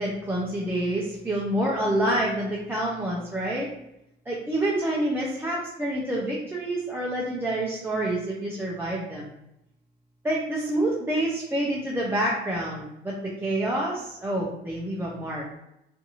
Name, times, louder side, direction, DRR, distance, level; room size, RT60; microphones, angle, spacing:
voice 1, 0.0-3.7 4.3-9.3 10.2-15.4, right 1 dB, 15° right, -5 dB, 0.5 m, -27 dB
2.5 x 2.5 x 2.8 m, 0.85 s
cardioid pair, 110°, 17 cm